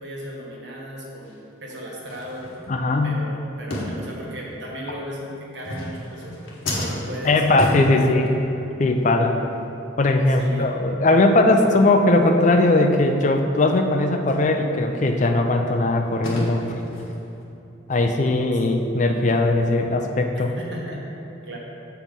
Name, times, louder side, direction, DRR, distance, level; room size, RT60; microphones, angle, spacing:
voice 1, 0.0-2.5 3.0-6.4 6.7-8.5 10.3-10.7 20.3-21.0 21.5-21.6, equal, 65° right, -3 dB, 1.3 m, -36 dB
sound 1, 1.2-1.3 2.0-3.1 3.7-4.6 5.5-8.7 9.0-9.2 9.5-9.7 10.1-10.2 10.6-10.8 11.2-11.3 11.7-11.8 12.2-12.3 14.3-14.4 14.9-17.4, equal, 85° left, 1.3 m, -32 dB
voice 2, 2.7-3.2 7.2-8.3 8.8-9.4 10.0-16.7 17.9-20.5, left 2 dB, 40° left, 4 dB, 0.4 m, -19 dB
7.2 x 4.6 x 5.2 m, 2.9 s
head